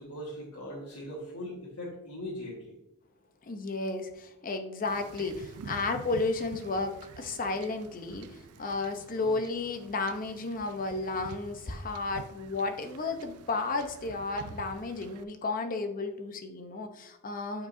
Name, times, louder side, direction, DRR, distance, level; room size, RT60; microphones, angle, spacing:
voice 1, 0.0-2.8 9.2-9.3, left 1 dB, 75° left, -7 dB, 1.6 m, -40 dB
voice 2, 3.4-17.7, left 3 dB, 40° left, 6 dB, 0.7 m, -33 dB
Wind / Ocean / Boat Water vehicle, 4.9-15.2, right 5 dB, 70° right, 0.4 m, -48 dB
8.4 x 4.8 x 2.6 m, 0.87 s
head